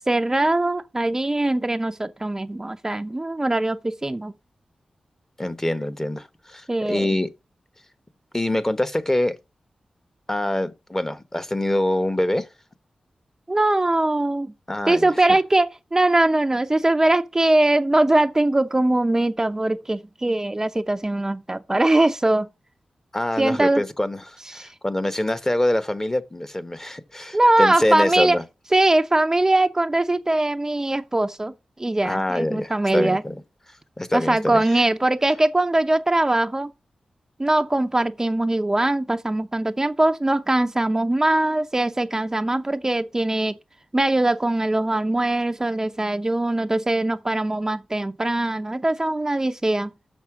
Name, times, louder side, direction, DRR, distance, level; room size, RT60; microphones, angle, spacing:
voice 1, 0.1-4.3 6.7-7.1 13.5-14.5 14.9-22.5 23.4-23.8 24.5-24.7 27.3-28.4 28.7-31.5 31.8-33.2 34.1-36.7 37.4-43.6 43.9-49.9, right 2 dB, 25° right, 0.6 m, -21 dB
voice 2, 5.4-7.3 8.3-9.3 10.3-12.5 14.7-15.4 23.1-28.4 32.0-33.4 34.0-34.6, left 1 dB, 20° left, 0.9 m, -25 dB
6.5 x 6.2 x 4.8 m
cardioid pair, 55°, 2 cm